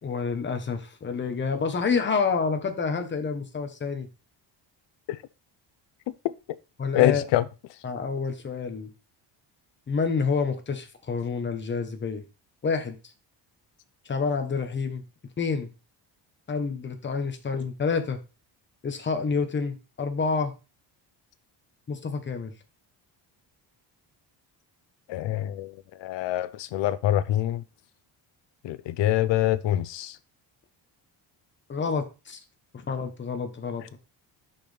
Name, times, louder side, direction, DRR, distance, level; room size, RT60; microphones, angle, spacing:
voice 1, 0.0-4.1 6.8-7.2 7.8-8.9 9.9-12.2 12.6-12.9 14.0-15.0 15.4-15.7 16.5-18.2 18.8-20.5 21.9-22.5 31.7-32.4 32.7-34.0, left 5 dB, 25° left, 1.1 m, -28 dB
voice 2, 6.9-7.4 25.1-25.7 26.0-27.6 28.6-30.2, left 13 dB, 75° left, 0.7 m, -25 dB
6.2 x 5.8 x 3.4 m
cardioid pair, 160°, 43 cm